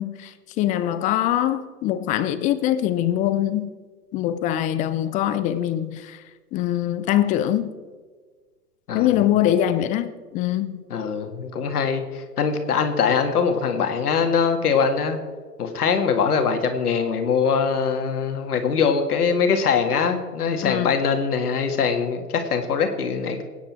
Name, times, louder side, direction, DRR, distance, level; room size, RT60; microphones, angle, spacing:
voice 1, 0.0-3.7 4.1-6.2 6.5-7.7 8.9-10.8 20.6-20.9, left 12 dB, 15° left, 0.5 m, -23 dB
voice 2, 10.9-15.2 15.6-23.4, left 6 dB, 65° left, 2.2 m, -22 dB
23.0 x 9.7 x 4.5 m
figure-of-eight pair, 105°, 48 cm